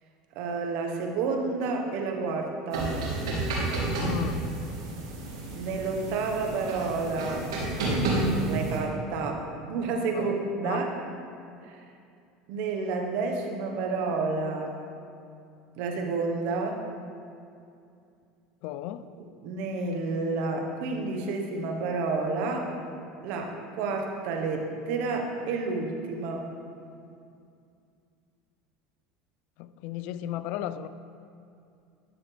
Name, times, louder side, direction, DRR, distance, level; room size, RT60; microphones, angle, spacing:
voice 1, 0.3-3.0 5.5-7.5 8.5-10.9 11.6-11.8 12.5-14.8 15.8-16.8 19.2-22.7 23.2-26.5, right 4 dB, 65° right, 3 dB, 1.0 m, -30 dB
sound 1, 2.7-8.8, right 2 dB, 85° right, 1.7 m, -30 dB
voice 2, 4.0-4.4 10.1-10.4 10.6-10.8 18.6-19.0 29.6-30.9, left 11 dB, 65° left, 14 dB, 0.3 m, -34 dB
10.0 x 6.4 x 3.3 m, 2.5 s
hypercardioid pair, 90°, 2 cm